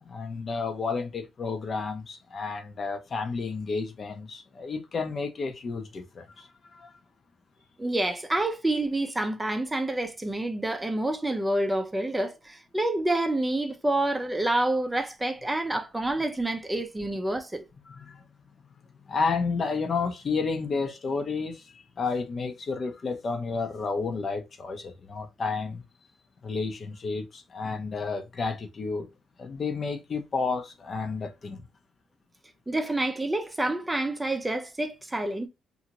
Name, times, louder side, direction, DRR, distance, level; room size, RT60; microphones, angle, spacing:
voice 1, 0.0-6.9 17.9-18.2 19.1-25.8 26.4-29.1 29.4-31.6, left 4 dB, 45° left, 0.6 m, -31 dB
voice 2, 7.8-17.6 32.7-35.5, right 1 dB, 15° right, 0.5 m, -28 dB
2.8 x 2.5 x 2.8 m
cardioid pair, 90°, 0 cm